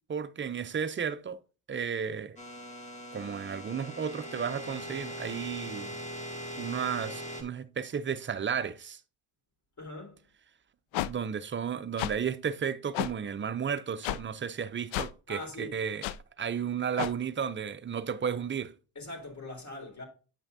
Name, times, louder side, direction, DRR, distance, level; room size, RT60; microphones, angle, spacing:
voice 1, 0.1-1.4 1.7-2.4 3.1-5.9 6.6-9.0 11.0-16.1 16.4-18.7, right 7 dB, 25° right, 0.5 m, -33 dB
sound 1, 2.4-7.4, equal, 15° left, 2.2 m, -41 dB
voice 2, 9.8-10.2 15.3-15.8 19.0-20.0, left 1 dB, 35° left, 3.6 m, -41 dB
sound 2, 10.9-11.1 12.0-12.1 12.9-13.1 14.0-14.2 14.9-15.1 16.0-16.2 17.0-17.1, left 14 dB, 65° left, 0.6 m, -31 dB
9.0 x 5.7 x 2.7 m
cardioid pair, 90°, 50 cm